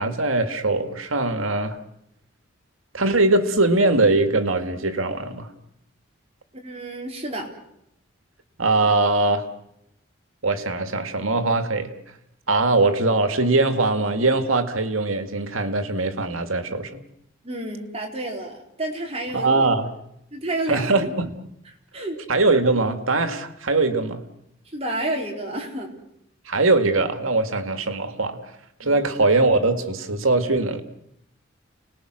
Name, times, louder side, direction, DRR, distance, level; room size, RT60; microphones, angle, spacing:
voice 1, 0.0-1.8 2.9-5.5 8.6-9.5 10.4-11.9 12.5-17.0 19.3-19.9 20.7-21.3 22.3-24.2 26.5-28.4 28.8-30.8, right 2 dB, 90° right, 2.1 m, -21 dB
voice 2, 6.6-7.5 17.4-19.6 20.3-20.9 21.9-22.2 24.6-25.9 28.8-29.1, right 1 dB, 30° right, 4.3 m, -30 dB
30.0 x 20.0 x 6.5 m
head